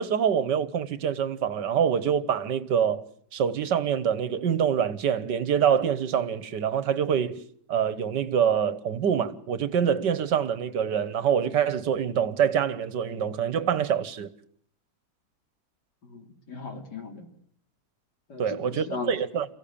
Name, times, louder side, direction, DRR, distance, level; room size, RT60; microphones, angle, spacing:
voice 1, 0.0-3.0 3.3-7.4 7.7-14.3 18.4-19.5, right 8 dB, 75° right, 1.8 m, -25 dB
voice 2, 16.0-17.3 18.3-19.1, left 4 dB, 70° left, 3.8 m, -37 dB
29.0 x 16.0 x 8.7 m
omnidirectional pair, 1.9 m